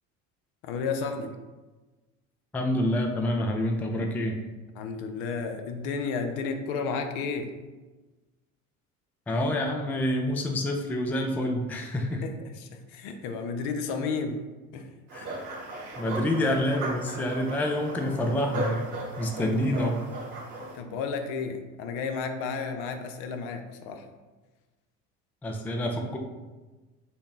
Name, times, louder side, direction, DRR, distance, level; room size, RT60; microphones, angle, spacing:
voice 1, 0.6-1.3 4.8-7.5 12.2-14.5 14.7-14.9 20.7-24.1, left 5 dB, 70° left, 6 dB, 0.6 m, -32 dB
voice 2, 2.5-4.4 9.3-12.2 15.1-15.4 16.0-18.9 19.2-20.0 25.4-26.2, left 1 dB, 5° left, 2 dB, 0.3 m, -27 dB
sound 1, 15.1-20.8, right 2 dB, 90° right, 0.8 m, -37 dB
4.1 x 2.0 x 3.5 m, 1.2 s
hypercardioid pair, 60°, 41 cm